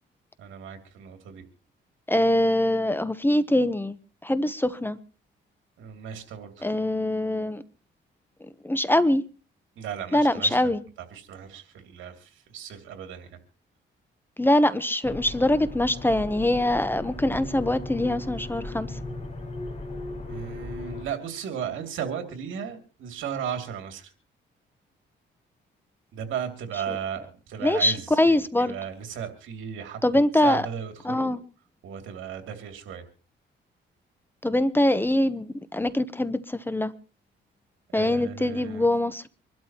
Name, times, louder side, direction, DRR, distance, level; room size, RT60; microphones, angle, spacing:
voice 1, 0.4-1.4 5.8-6.7 9.8-10.7 11.1-13.4 20.3-24.1 26.1-30.0 30.4-31.4 31.8-33.0 37.9-38.9, right 8 dB, 80° right, 2.6 m, -35 dB
voice 2, 2.1-4.0 4.2-5.0 6.6-7.6 8.6-9.2 10.1-10.8 14.4-18.9 27.6-28.7 30.0-30.6 31.0-31.4 34.4-36.9 37.9-39.3, left 1 dB, 10° left, 0.9 m, -23 dB
sound 1, 15.0-21.0, left 2 dB, 35° left, 5.6 m, -37 dB
25.5 x 12.5 x 3.0 m
cardioid pair, 90°, 20 cm